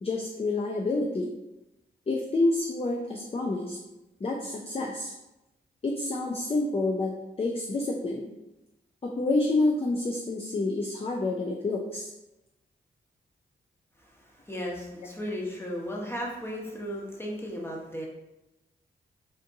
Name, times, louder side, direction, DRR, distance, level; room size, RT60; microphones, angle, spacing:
voice 1, 0.0-1.3 2.1-3.8 4.2-5.1 5.8-8.3 9.0-12.1, left 2 dB, 30° left, 0 dB, 0.5 m, -28 dB
voice 2, 14.0-18.1, equal, 10° left, -2 dB, 1.0 m, -35 dB
3.6 x 2.5 x 2.6 m, 0.95 s
supercardioid pair, 40°, 21 cm